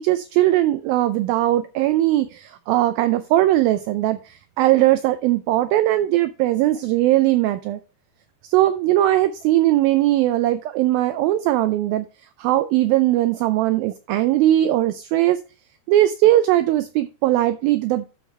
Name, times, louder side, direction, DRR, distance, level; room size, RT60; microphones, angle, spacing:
voice 1, 0.0-7.8 8.5-12.1 12.4-15.4 15.9-18.1, right 14 dB, 85° right, 11 dB, 2.1 m, -19 dB
13.0 x 5.4 x 3.2 m, 0.33 s
omnidirectional pair, 4.7 m